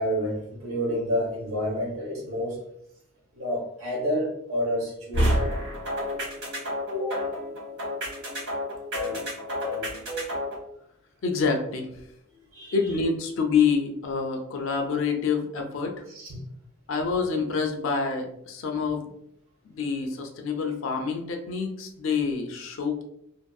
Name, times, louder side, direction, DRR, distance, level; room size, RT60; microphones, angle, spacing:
voice 1, 0.0-2.6 3.3-5.5 6.9-7.2 12.5-12.8 16.1-16.4, equal, 70° right, -2 dB, 0.9 m, -29 dB
sound 1, 5.1-10.6, equal, 90° right, 1.4 m, -29 dB
voice 2, 11.2-11.9 12.7-16.0 16.9-19.1 19.7-23.0, left 5 dB, 60° left, 3 dB, 0.4 m, -27 dB
2.6 x 2.6 x 2.3 m, 0.76 s
head